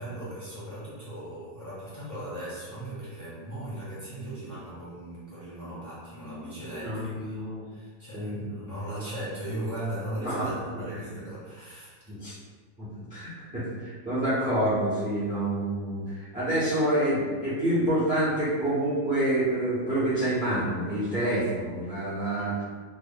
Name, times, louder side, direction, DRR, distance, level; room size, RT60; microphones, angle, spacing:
voice 1, 0.0-12.0, right 1 dB, 15° left, -11 dB, 0.8 m, -38 dB
voice 2, 6.8-7.6 8.1-8.5 10.2-10.5 10.7-10.8 12.1-12.3 12.8-22.6, right 1 dB, 10° right, -11 dB, 0.5 m, -27 dB
3.3 x 2.1 x 3.5 m, 1.5 s
omnidirectional pair, 1.8 m